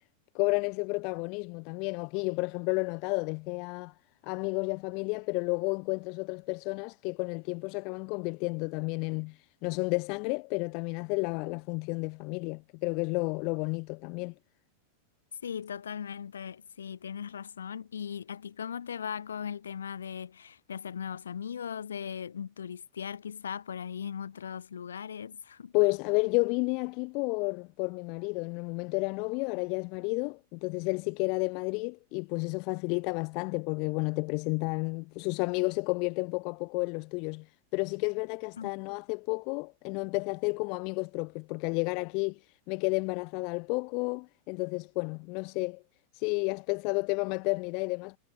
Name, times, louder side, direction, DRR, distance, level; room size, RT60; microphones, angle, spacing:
voice 1, 0.3-3.9 4.2-14.3 25.7-37.5 37.7-42.4 42.7-45.8 46.1-48.2, left 32 dB, 45° left, 1.5 m, -31 dB
voice 2, 15.4-25.7 38.6-38.7, left 8 dB, 70° left, 5.5 m, -38 dB
figure-of-eight pair, 90°, 0 cm